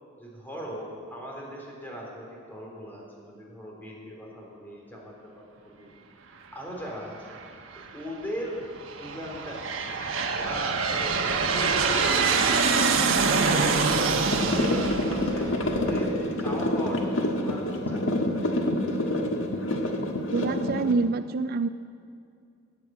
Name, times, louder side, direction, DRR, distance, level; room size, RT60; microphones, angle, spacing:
voice 1, 0.2-6.0 6.5-7.4 7.9-12.3 12.6-16.1 16.4-18.1, equal, 10° left, -2 dB, 3.3 m, -39 dB
Aircraft, 7.3-7.9 8.6-16.1, right 4 dB, 85° right, 1.2 m, -25 dB
sound 1, 14.3-20.9, left 1 dB, 80° left, 1.5 m, -27 dB
voice 2, 20.3-21.7, right 4 dB, 50° right, 12 dB, 0.4 m, -26 dB
14.0 x 9.5 x 8.5 m, 2.3 s
head